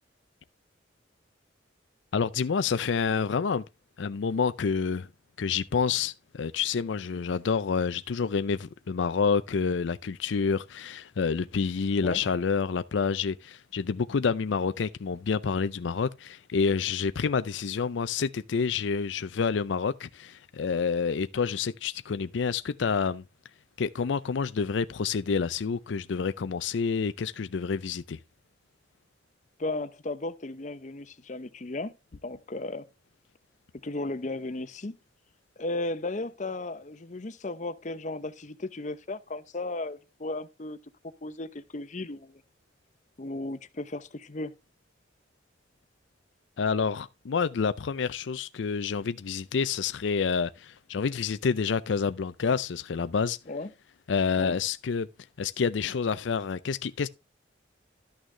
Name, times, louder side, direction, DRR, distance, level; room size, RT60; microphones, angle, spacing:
voice 1, 2.1-3.6 4.0-5.1 5.4-23.2 23.8-28.2 46.6-53.4 54.1-55.1 55.4-57.1, left 5 dB, 75° left, 0.5 m, -28 dB
voice 2, 29.6-31.9 32.2-32.9 33.8-35.0 35.6-40.8 41.2-42.4 43.2-44.5 53.5-53.7 54.4-54.5, left 2 dB, 40° left, 0.8 m, -35 dB
12.5 x 6.4 x 3.3 m
head